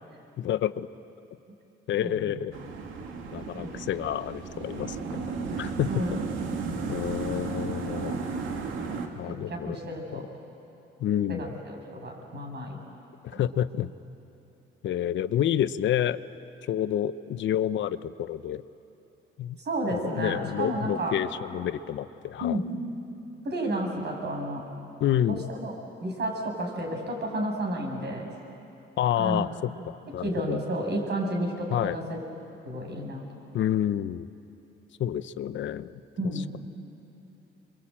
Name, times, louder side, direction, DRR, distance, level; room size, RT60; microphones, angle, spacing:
voice 1, 0.4-0.9 1.9-2.5 3.3-5.2 5.6-6.0 6.9-8.2 9.2-10.2 11.0-11.5 13.2-13.9 14.8-16.2 16.7-18.6 19.4-19.6 19.9-22.6 25.0-25.5 29.0-30.6 31.7-32.0 33.5-34.3 35.0-35.9, left 11 dB, 70° left, 13 dB, 0.8 m, -29 dB
sound 1, 2.5-9.1, right 4 dB, 90° right, 2.4 m, -34 dB
voice 2, 5.9-6.2 7.9-8.0 9.2-10.2 11.3-12.8 13.3-13.4 19.6-21.1 22.4-22.7 23.4-24.6 25.3-28.3 29.2-29.6 30.2-32.2 32.6-33.2 36.2-36.5, right 1 dB, 60° right, 1 dB, 6.7 m, -31 dB
26.5 x 23.0 x 8.8 m, 2.8 s
cardioid pair, 90°, 20 cm